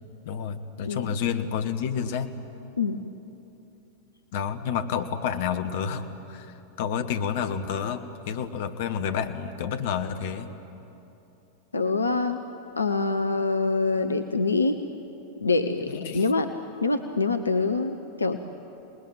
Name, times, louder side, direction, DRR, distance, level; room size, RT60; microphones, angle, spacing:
voice 1, 0.2-2.3 4.3-10.5 16.0-16.2, left 7 dB, 50° left, 8 dB, 1.4 m, -29 dB
voice 2, 11.7-12.4 12.8-14.8 15.4-16.5 16.8-18.4, left 3 dB, 80° left, 7 dB, 0.9 m, -25 dB
27.5 x 20.0 x 9.1 m, 3.0 s
figure-of-eight pair, 90°, 0 cm